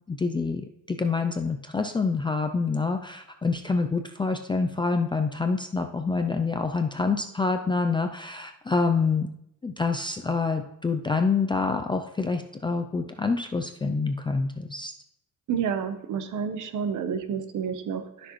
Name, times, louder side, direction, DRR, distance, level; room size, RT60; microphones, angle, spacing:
voice 1, 0.1-9.3 9.6-14.9, left 4 dB, 15° left, 5 dB, 0.3 m, -27 dB
voice 2, 15.5-18.3, right 7 dB, 60° right, 9 dB, 0.9 m, -30 dB
12.5 x 6.1 x 3.0 m, 0.77 s
cardioid pair, 160°, 34 cm